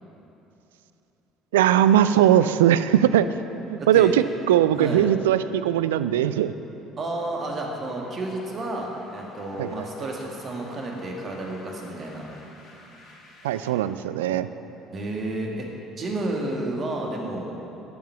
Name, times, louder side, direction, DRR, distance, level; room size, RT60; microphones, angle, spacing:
voice 1, 1.5-3.3 3.7-6.5 9.6-9.7 13.4-14.5, right 11 dB, 75° right, 13 dB, 0.3 m, -20 dB
voice 2, 3.8-4.1 4.7-5.1 7.0-12.3 14.9-15.7 16.0-17.6, right 2 dB, 40° right, 0 dB, 2.1 m, -31 dB
sound 1, 7.2-13.7, left 2 dB, 55° left, 2.1 m, -48 dB
13.5 x 7.6 x 5.8 m, 3.0 s
figure-of-eight pair, 55°, 0 cm